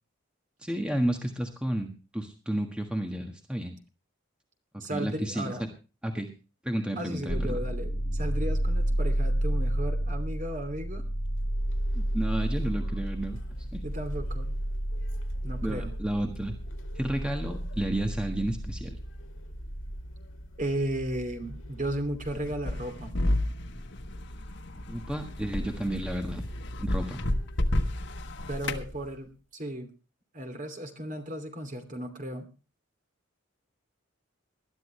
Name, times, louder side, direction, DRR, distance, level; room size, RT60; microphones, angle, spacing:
voice 1, 0.6-3.7 4.9-5.7 6.0-6.3 6.6-7.6 11.9-13.8 15.6-16.5 16.9-19.0 24.9-26.5 26.8-27.2, right 1 dB, 5° right, 4 dB, 1.5 m, -32 dB
voice 2, 4.8-5.6 7.0-11.0 13.8-14.5 15.4-15.9 20.6-23.1 28.5-29.9 30.3-32.5, right 1 dB, 40° right, 6 dB, 2.8 m, -35 dB
sound 1, 7.3-20.0, right 1 dB, 35° left, 4.8 m, -31 dB
sound 2, 11.1-29.4, equal, 80° left, 2.3 m, -44 dB
sound 3, 22.3-28.9, left 1 dB, 60° left, 1.4 m, -31 dB
20.5 x 12.0 x 3.2 m, 0.33 s
head